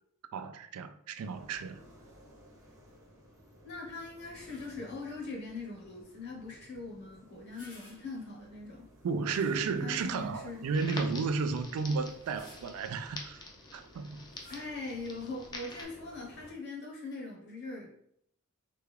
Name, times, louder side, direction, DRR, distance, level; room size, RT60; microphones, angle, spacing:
voice 1, 0.3-1.8 9.0-13.4 13.7-14.2, right 4 dB, 90° right, 0.3 m, -33 dB
sound 1, 1.2-16.5, equal, 15° right, 0.7 m, -57 dB
voice 2, 3.6-8.9 9.8-10.6 14.5-17.9, left 3 dB, 50° left, 0.9 m, -41 dB
sound 2, 4.2-5.0 7.3-8.4 9.2-10.1 10.7-10.8 12.0-13.0 14.3-14.8, equal, 75° left, 1.2 m, -57 dB
Crackle, 10.7-15.8, left 2 dB, 20° left, 0.4 m, -46 dB
3.4 x 2.3 x 3.3 m
head